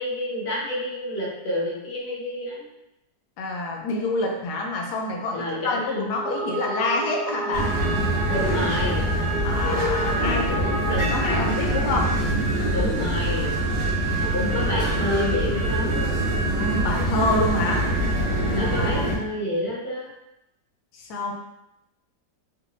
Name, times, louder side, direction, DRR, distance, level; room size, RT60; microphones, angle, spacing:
voice 1, 0.0-2.7 5.3-6.1 8.3-9.1 10.9-11.0 12.7-13.6 14.2-16.1 18.5-20.1, left 1 dB, 45° left, -4 dB, 1.0 m, -29 dB
voice 2, 3.4-7.7 9.4-12.1 16.4-17.8 18.6-19.1 20.9-21.3, left 2 dB, 75° left, 1 dB, 1.1 m, -27 dB
sound 1, 5.9-11.7, right 1 dB, 90° right, 1.6 m, -32 dB
sound 2, 7.5-19.2, right 1 dB, 70° right, 1.4 m, -24 dB
4.0 x 2.6 x 2.6 m, 0.88 s
omnidirectional pair, 1.8 m